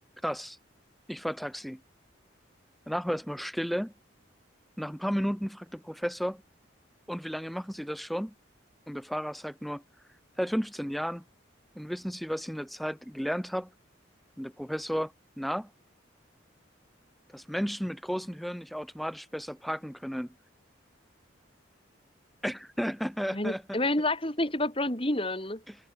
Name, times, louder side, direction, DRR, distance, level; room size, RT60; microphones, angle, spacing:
voice 1, 0.2-0.6 1.1-1.8 2.9-3.9 4.8-6.4 7.1-8.3 8.9-9.8 10.4-11.2 11.7-13.7 14.4-15.7 17.3-20.3 22.4-23.8 25.7-25.8, equal, ahead, 1.6 m, -33 dB
voice 2, 23.3-25.6, left 1 dB, 30° left, 5.6 m, -29 dB
head